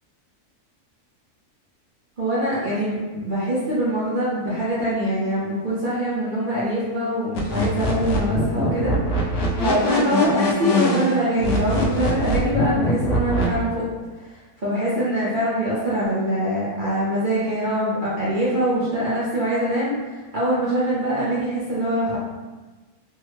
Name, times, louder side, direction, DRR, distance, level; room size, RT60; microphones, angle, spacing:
voice 1, 2.2-13.8 14.1-22.2, equal, 50° right, -9 dB, 0.6 m, -24 dB
sound 1, 7.3-13.4, left 1 dB, 65° left, 0.8 m, -23 dB
3.5 x 2.1 x 3.0 m, 1.3 s
omnidirectional pair, 1.6 m